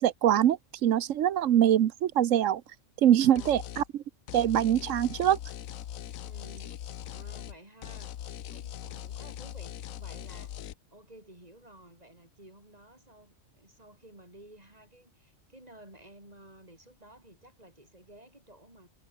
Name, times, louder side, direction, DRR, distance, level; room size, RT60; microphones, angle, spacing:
voice 1, 0.0-2.6 3.0-3.8 4.3-5.4, right 11 dB, 70° right, 1.1 m, -23 dB
voice 2, 3.2-3.7 6.2-6.8 7.1-8.1 8.5-10.6 10.9-18.9, right 1 dB, 30° right, 7.6 m, -53 dB
sound 1, 3.4-3.9 4.3-7.6 7.8-10.7, left 11 dB, 85° left, 1.2 m, -41 dB
omnidirectional pair, 1.4 m